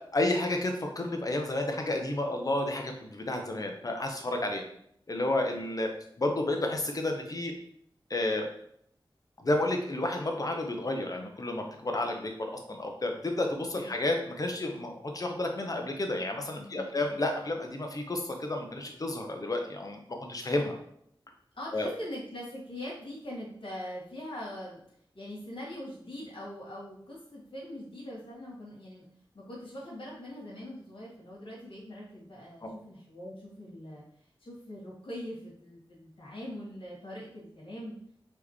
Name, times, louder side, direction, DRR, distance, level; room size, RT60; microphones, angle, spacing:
voice 1, 0.1-4.6 5.1-5.9 6.2-7.5 8.1-8.5 9.4-20.8 21.7-21.9 32.6-32.7, left 2 dB, 40° left, 3 dB, 0.8 m, -31 dB
voice 2, 16.6-16.9 21.5-24.8 25.1-29.1 29.3-34.0 34.4-38.0, left 1 dB, 80° left, -7 dB, 1.8 m, -42 dB
4.2 x 3.5 x 3.1 m, 0.69 s
wide cardioid pair, 85°, 9 cm